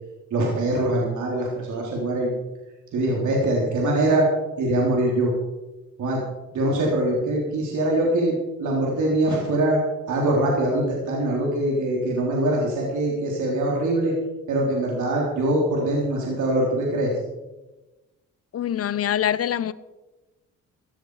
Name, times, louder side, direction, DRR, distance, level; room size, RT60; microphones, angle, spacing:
voice 1, 0.3-2.3 2.9-4.3 4.6-5.3 6.0-6.2 6.5-9.8 10.1-14.1 14.5-17.1, right 1 dB, 75° right, -2 dB, 3.9 m, -23 dB
voice 2, 18.5-19.7, left 10 dB, 50° left, 16 dB, 0.8 m, -24 dB
16.0 x 12.5 x 5.0 m, 1.1 s
cardioid pair, 90°, 30 cm